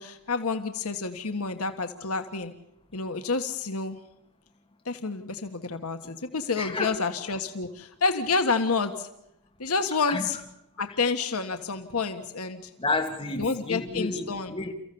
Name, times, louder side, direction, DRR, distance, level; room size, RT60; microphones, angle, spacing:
voice 1, 0.0-2.5 2.9-4.0 4.8-9.1 9.6-10.4 10.8-12.7 13.4-14.5, left 4 dB, 70° left, 1.5 m, -29 dB
voice 2, 6.6-6.9 10.1-10.2 12.8-14.7, left 2 dB, 25° left, 2.6 m, -30 dB
29.5 x 15.0 x 7.0 m
head